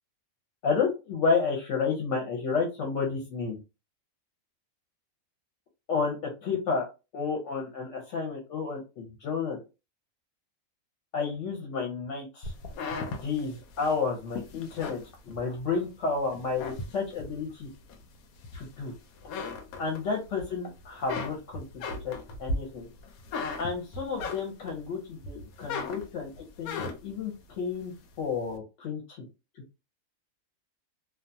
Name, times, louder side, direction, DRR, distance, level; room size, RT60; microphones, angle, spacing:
voice 1, 0.6-3.6 5.9-6.9 7.1-9.6 11.1-12.5 13.0-17.7 18.5-18.9 19.8-22.9 23.6-27.9 28.2-29.3, left 5 dB, 65° left, 0 dB, 1.0 m, -31 dB
sound 1, 12.4-15.9 16.3-17.4 17.9-18.9 19.2-20.4 20.8-24.8 25.2-27.2, left 3 dB, 90° left, 1.0 m, -37 dB
2.4 x 2.3 x 2.7 m, 0.28 s
omnidirectional pair, 1.5 m